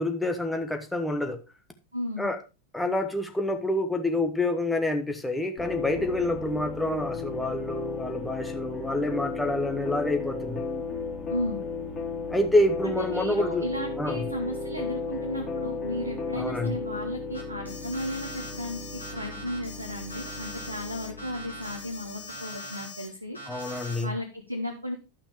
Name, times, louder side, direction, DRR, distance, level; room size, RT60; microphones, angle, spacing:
voice 1, 0.0-1.4 2.2-2.4 2.7-10.6 12.3-13.7 14.0-14.2 16.4-16.8 23.5-24.1, left 1 dB, 5° left, 5 dB, 1.2 m, -27 dB
voice 2, 1.9-2.3 11.3-11.6 12.8-23.4 24.0-25.0, left 1 dB, 90° right, 1 dB, 1.1 m, -34 dB
sound 1, 5.6-22.3, left 4 dB, 30° left, 3.1 m, -35 dB
Alarm, 17.3-23.0 23.3-24.0, left 1 dB, 85° left, 3.2 m, -41 dB
12.0 x 5.9 x 3.2 m, 0.28 s
figure-of-eight pair, 90°, 0 cm